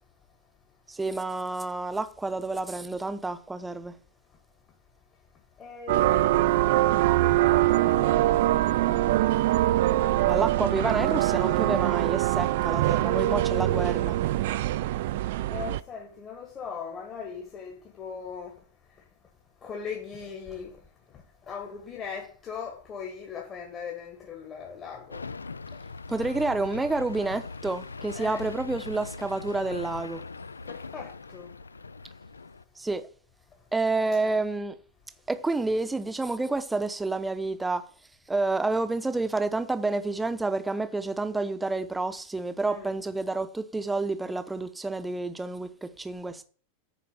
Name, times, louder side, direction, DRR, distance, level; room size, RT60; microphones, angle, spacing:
voice 1, 0.9-3.9 10.3-14.1 26.1-30.2 32.8-33.1 33.7-34.7 35.3-37.8 38.3-46.4, right 3 dB, 10° right, 0.8 m, -29 dB
voice 2, 5.6-6.6 7.0-9.2 15.5-18.6 18.9-19.0 19.6-20.8 21.1-25.2 28.1-28.4 30.6-31.5 42.6-42.9, left 6 dB, 25° left, 1.4 m, -40 dB
sound 1, 5.9-15.8, right 15 dB, 55° right, 0.3 m, -23 dB
sound 2, 25.1-32.6, left 4 dB, 75° left, 0.3 m, -40 dB
6.8 x 4.7 x 6.9 m
figure-of-eight pair, 90°, 0 cm